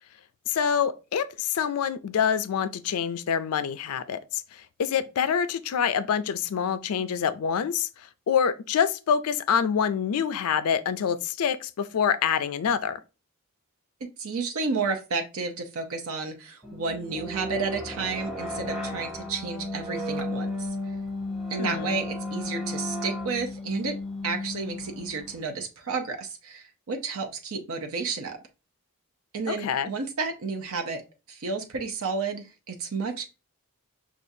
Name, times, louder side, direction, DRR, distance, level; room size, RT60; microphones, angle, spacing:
voice 1, 0.5-13.0 21.6-22.0 29.5-29.9, left 7 dB, 80° left, 0.4 m, -26 dB
voice 2, 14.2-20.7 21.5-23.9 24.2-28.4 29.3-31.0 31.3-33.3, right 4 dB, 70° right, 0.6 m, -31 dB
sound 1, 16.6-25.4, left 1 dB, ahead, 0.8 m, -34 dB
6.1 x 2.4 x 2.6 m
head